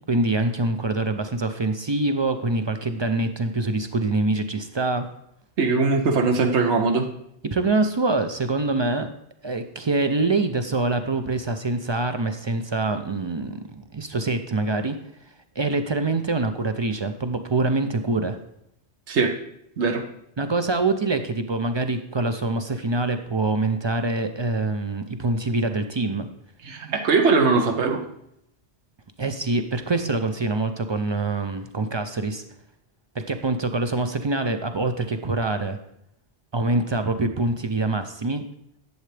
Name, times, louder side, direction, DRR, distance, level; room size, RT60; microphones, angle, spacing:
voice 1, 0.1-5.1 7.4-9.1 9.4-15.0 15.6-18.4 20.4-26.3 29.2-32.4 33.1-35.8 36.5-38.4, right 2 dB, 45° right, 8 dB, 0.3 m, -25 dB
voice 2, 5.6-7.1 19.1-19.3 19.8-20.0 26.6-28.1, right 4 dB, 85° right, 4 dB, 1.1 m, -21 dB
11.0 x 7.7 x 3.3 m, 0.76 s
omnidirectional pair, 1.1 m